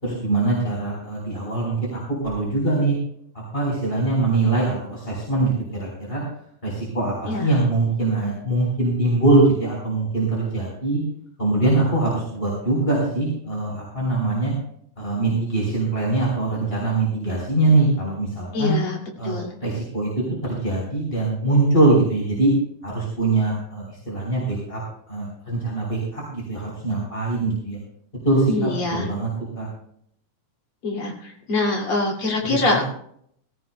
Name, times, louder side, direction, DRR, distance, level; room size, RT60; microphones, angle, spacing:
voice 1, 0.0-2.9 3.5-6.2 6.6-11.0 11.4-14.5 15.0-18.7 19.2-19.4 19.6-22.5 22.8-24.8 25.1-27.8 28.2-29.3 29.5-29.7 32.4-32.8, right 2 dB, 15° left, -4 dB, 3.9 m, -22 dB
voice 2, 18.5-19.0 19.2-19.5 28.5-29.1 30.8-32.8, left 2 dB, 45° left, 0 dB, 3.2 m, -24 dB
19.0 x 17.0 x 2.2 m, 0.67 s
omnidirectional pair, 3.6 m